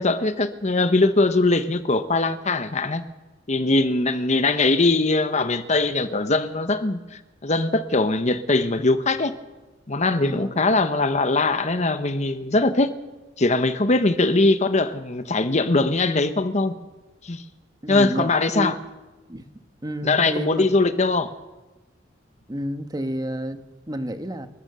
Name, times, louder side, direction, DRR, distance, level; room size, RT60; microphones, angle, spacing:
voice 1, 0.0-3.0 3.5-9.3 9.9-12.9 13.4-16.7 17.2-17.4 17.9-18.7 20.0-21.3, left 2 dB, 35° left, 1.0 m, -21 dB
voice 2, 10.2-10.7 17.8-18.8 19.3-19.5 19.8-20.7 22.5-24.5, right 1 dB, 20° right, 1.3 m, -30 dB
29.5 x 14.0 x 6.8 m
head